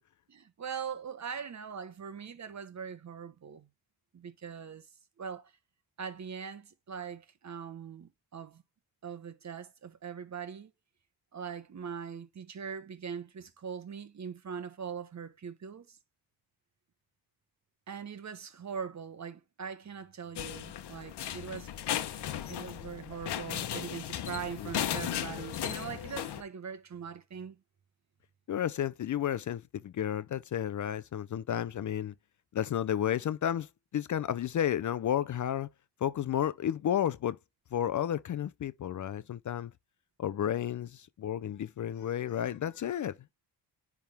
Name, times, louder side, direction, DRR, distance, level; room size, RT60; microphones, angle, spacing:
voice 1, 0.3-3.7 4.1-4.9 5.2-5.5 6.0-8.6 9.0-10.7 11.3-16.0 17.9-21.7 22.4-27.6, right 7 dB, 40° right, 1.2 m, -41 dB
sound 1, 20.4-26.4, left 10 dB, 70° left, 1.0 m, -36 dB
voice 2, 28.5-32.1 32.5-35.7 36.0-37.4 37.7-39.7 40.2-43.2, left 10 dB, 45° left, 0.5 m, -32 dB
10.0 x 3.6 x 3.5 m
cardioid pair, 95°, 41 cm